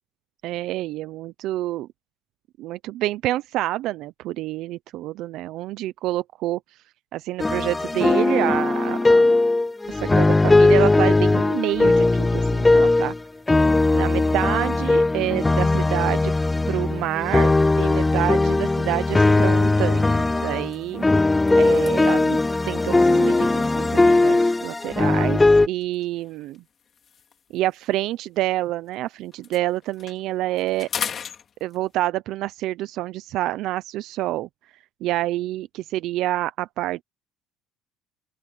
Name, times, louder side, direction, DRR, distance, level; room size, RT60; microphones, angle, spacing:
voice 1, 0.4-1.9 2.6-6.8 7.1-9.4 9.9-13.1 13.9-16.3 16.7-17.5 17.8-21.0 21.5-22.4 22.6-26.6 27.5-30.9 31.6-34.5 35.0-37.0, right 15 dB, 60° right, 0.5 m, -27 dB
sound 1, 7.4-13.2 13.5-25.7, left 2 dB, 10° left, 0.4 m, -19 dB
sound 2, 20.6-24.5 25.4-28.9 29.2-32.1, left 7 dB, 35° left, 3.0 m, -39 dB
open air
cardioid pair, 150°, 0 cm